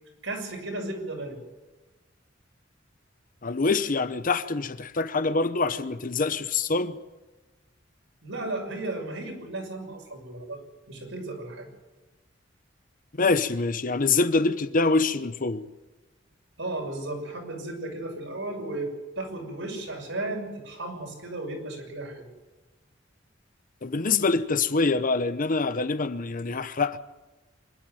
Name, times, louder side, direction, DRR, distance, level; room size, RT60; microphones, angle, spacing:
voice 1, 0.2-1.4 8.2-10.6 10.9-11.7 16.6-18.9 19.2-22.2, right 2 dB, 80° right, 6.3 m, -34 dB
voice 2, 3.4-7.0 13.2-15.7 23.8-27.0, left 3 dB, 45° left, 0.9 m, -25 dB
25.5 x 12.0 x 9.3 m
head